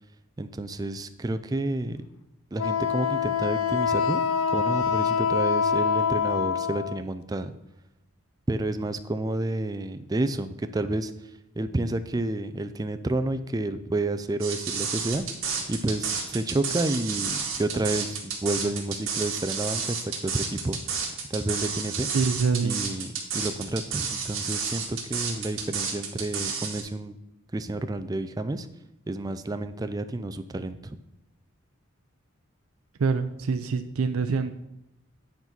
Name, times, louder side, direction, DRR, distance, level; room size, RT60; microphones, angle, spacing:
voice 1, 0.4-2.0 2.5-4.2 4.5-7.5 8.5-11.1 11.6-15.3 15.7-20.8 21.3-22.1 22.6-27.2 27.5-28.7 29.1-31.0, right 2 dB, 20° right, 9 dB, 0.4 m, -30 dB
Wind instrument woodwind instrument, 2.6-7.0, left 6 dB, 80° left, 0.5 m, -25 dB
sound 1, 14.4-26.8, right 6 dB, 70° right, 1.7 m, -31 dB
voice 2, 22.1-22.8 33.0-34.5, right 5 dB, 85° right, 9 dB, 0.5 m, -25 dB
9.5 x 4.0 x 5.9 m, 0.89 s
head